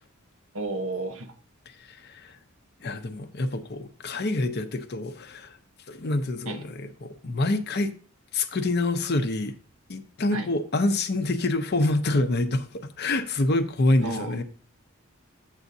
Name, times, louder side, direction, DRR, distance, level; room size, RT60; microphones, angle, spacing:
voice 1, 0.5-1.3 6.4-6.6 10.3-10.5 14.0-14.4, right 2 dB, 80° right, 1.1 m, -32 dB
voice 2, 1.7-2.4 2.8-5.6 5.9-7.9 8.3-9.5 9.9-14.4, left 2 dB, 55° left, 0.7 m, -26 dB
8.2 x 7.0 x 2.7 m
head